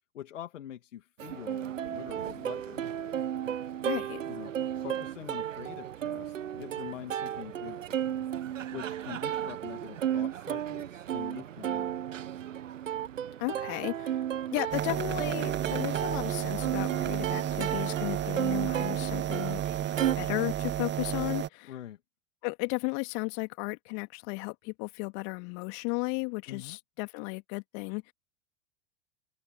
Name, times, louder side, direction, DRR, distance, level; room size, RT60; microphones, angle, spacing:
voice 1, 0.1-2.8 4.3-8.2 8.7-12.1 21.7-22.0 26.5-26.8, left 11 dB, 75° left, 2.7 m, -45 dB
Plucked string instrument, 1.2-20.2, right 10 dB, 80° right, 1.4 m, -34 dB
voice 2, 3.8-4.2 13.4-14.2 14.5-19.6 20.2-21.7 22.4-28.1, left 35 dB, 50° left, 2.4 m, -34 dB
sound 1, 14.7-21.5, right 11 dB, 30° right, 1.3 m, -32 dB
open air
figure-of-eight pair, 90°, 38 cm